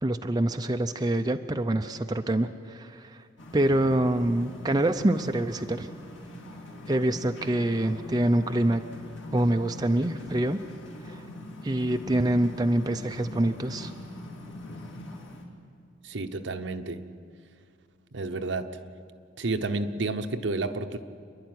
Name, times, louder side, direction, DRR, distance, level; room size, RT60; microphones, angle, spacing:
voice 1, 0.0-3.2 3.5-5.9 6.9-8.8 9.3-10.6 11.0-11.1 11.6-13.9, right 1 dB, 20° right, 5 dB, 0.6 m, -25 dB
sound 1, 3.4-15.4, left 1 dB, 75° left, 3.3 m, -42 dB
voice 2, 16.0-17.1 18.1-18.7 19.4-21.0, right 3 dB, 65° right, 8 dB, 0.9 m, -30 dB
28.0 x 11.5 x 9.4 m, 2.3 s
head